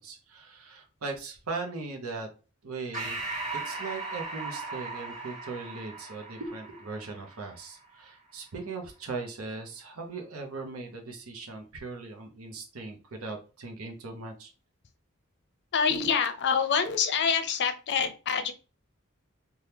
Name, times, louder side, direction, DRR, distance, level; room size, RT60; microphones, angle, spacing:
voice 1, 0.0-2.3 2.6-3.2 3.7-14.5, right 3 dB, 85° right, 3 dB, 0.7 m, -39 dB
Breathing, 2.9-7.8, right 3 dB, 35° right, 1.3 m, -38 dB
voice 2, 15.7-18.5, left 6 dB, 55° left, 8 dB, 0.5 m, -26 dB
2.8 x 2.3 x 3.3 m, 0.34 s
head